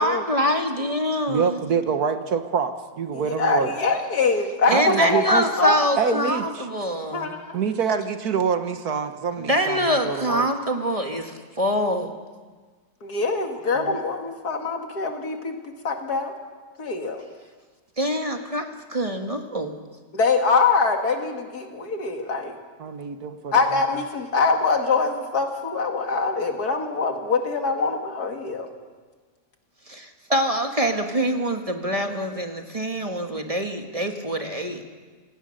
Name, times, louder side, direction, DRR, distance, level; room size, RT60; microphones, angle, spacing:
voice 1, 0.0-1.6 4.7-7.4 9.4-12.1 18.0-19.7 29.9-34.8, equal, 20° right, 4 dB, 1.6 m, -25 dB
voice 2, 1.3-3.7 4.7-5.5 6.0-6.7 7.5-10.5 13.7-14.0 22.8-23.8, right 6 dB, 70° right, 8 dB, 1.7 m, -26 dB
voice 3, 3.1-5.8 6.1-6.2 7.1-7.6 13.0-15.5 15.8-16.3 16.8-17.2 20.1-22.6 23.5-28.7, left 4 dB, 70° left, 4 dB, 2.6 m, -24 dB
27.0 x 18.0 x 6.6 m, 1.4 s
omnidirectional pair, 1.7 m